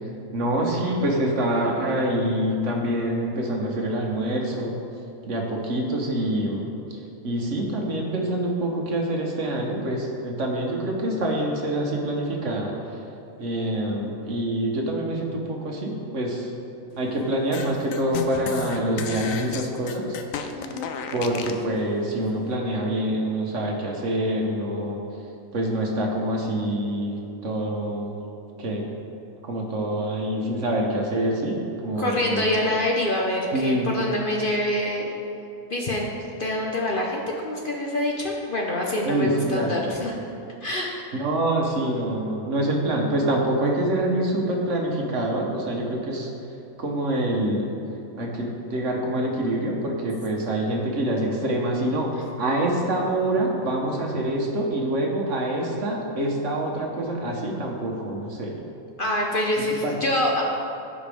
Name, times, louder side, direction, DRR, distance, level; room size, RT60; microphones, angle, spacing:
voice 1, 0.3-4.8 5.3-6.7 7.2-12.8 13.4-16.5 17.0-20.2 21.1-25.0 25.5-28.2 28.6-28.8 29.4-32.6 33.5-33.9 39.0-39.7 41.1-46.3 46.8-47.7 48.2-58.6 59.8-59.9, right 1 dB, 60° right, 0 dB, 1.4 m, -26 dB
sound 1, 17.5-21.6, left 7 dB, 70° left, 1.0 m, -33 dB
voice 2, 20.6-20.9 32.0-35.1 35.7-36.1 36.4-40.2 40.6-40.9 59.0-60.4, left 1 dB, 45° left, -1 dB, 0.8 m, -25 dB
15.0 x 5.0 x 3.5 m, 2.8 s
omnidirectional pair, 1.5 m